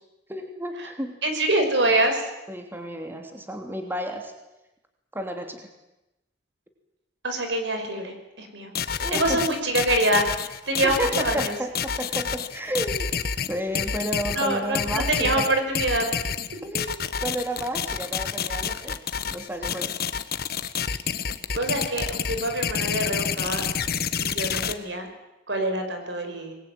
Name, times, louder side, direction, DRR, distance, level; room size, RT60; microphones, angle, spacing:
voice 1, 0.3-1.2 2.5-4.3 5.1-5.7 9.0-9.4 10.8-13.1 13.5-15.5 16.6-19.9, right 1 dB, 10° right, 4 dB, 3.0 m, -32 dB
voice 2, 1.2-2.3 7.2-8.7 9.1-11.5 14.4-16.1 21.5-23.6 24.2-25.1 25.5-26.5, right 1 dB, 75° right, 6 dB, 5.5 m, -25 dB
sound 1, 8.7-24.7, left 7 dB, 60° left, 1.3 m, -28 dB
24.5 x 21.5 x 9.3 m, 0.97 s
head